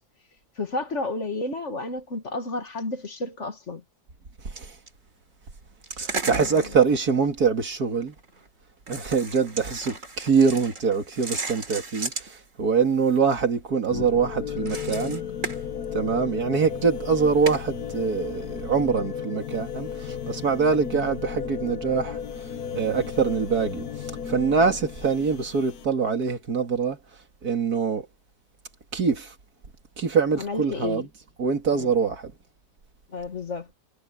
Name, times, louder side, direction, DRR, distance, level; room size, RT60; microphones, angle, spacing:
voice 1, 0.6-3.8 6.3-6.8 30.4-31.1 31.7-31.9 33.1-33.7, left 3 dB, 50° left, 2.2 m, -31 dB
sound 1, 4.6-4.9 5.8-7.2 8.0-8.5 8.9-12.4 12.8-13.4 14.6-15.6 16.4-16.5 17.5-17.6, right 3 dB, 55° right, 3.3 m, -35 dB
voice 2, 6.0-8.1 8.9-12.3 12.6-15.2 15.9-22.2 22.7-23.9 24.3-27.0 27.4-28.1 28.9-29.3 30.0-31.1 31.4-32.3, right 5 dB, 80° right, 2.9 m, -24 dB
sound 2, 13.9-25.9, left 8 dB, 75° left, 1.5 m, -34 dB
omnidirectional pair, 1.6 m